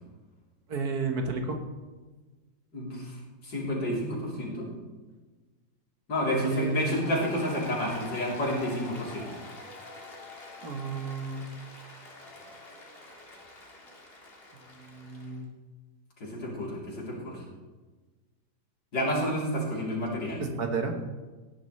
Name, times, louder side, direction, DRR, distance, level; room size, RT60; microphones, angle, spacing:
voice 1, 0.7-1.6 6.3-7.1 10.6-11.5 14.8-15.5 20.4-20.9, right 4 dB, 60° right, 4 dB, 1.9 m, -32 dB
voice 2, 2.7-3.1 3.4-4.7 6.1-9.3 16.2-17.4 18.9-20.4, left 1 dB, 75° left, -4 dB, 4.2 m, -30 dB
Applause, 6.6-15.4, left 2 dB, 35° left, 2.0 m, -45 dB
16.0 x 11.0 x 3.3 m, 1.3 s
omnidirectional pair, 1.9 m